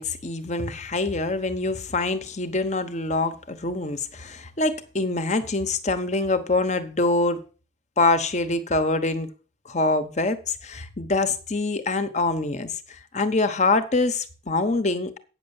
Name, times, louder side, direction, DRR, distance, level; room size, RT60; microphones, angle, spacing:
voice 1, 0.0-7.4 8.0-9.3 9.6-12.8 13.1-15.2, left 2 dB, 40° left, 1.1 m, -25 dB
9.1 x 6.6 x 7.1 m
head